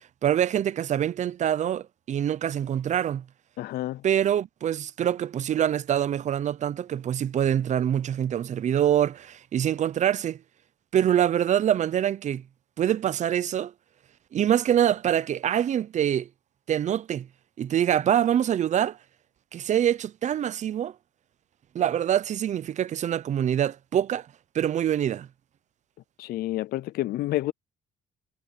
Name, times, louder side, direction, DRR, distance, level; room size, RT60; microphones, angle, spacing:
voice 1, 0.2-3.2 4.0-10.4 10.9-12.4 12.8-13.7 14.3-16.3 16.7-17.3 17.6-19.0 19.5-20.9 21.7-24.3 24.5-25.3, right 10 dB, 45° right, 0.6 m, -25 dB
voice 2, 3.6-4.0 26.2-27.5, left 16 dB, 65° left, 0.5 m, -29 dB
cardioid pair, 110°, 17 cm